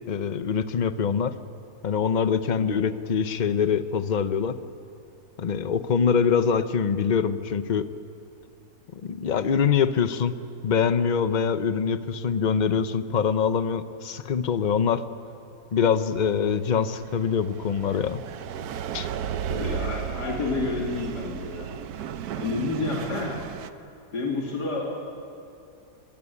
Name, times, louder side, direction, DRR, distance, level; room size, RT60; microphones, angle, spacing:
voice 1, 0.1-1.4 1.8-4.6 5.4-7.9 8.9-10.4 10.6-15.0 15.7-18.2 18.9-19.1, left 6 dB, 45° left, 12 dB, 0.6 m, -24 dB
sound 1, 16.1-23.7, right 9 dB, 70° right, 1.2 m, -34 dB
voice 2, 19.5-21.7 22.3-23.4 24.1-24.8, left 3 dB, 75° left, -2 dB, 3.2 m, -29 dB
23.0 x 21.0 x 8.4 m, 2.6 s
omnidirectional pair, 1.8 m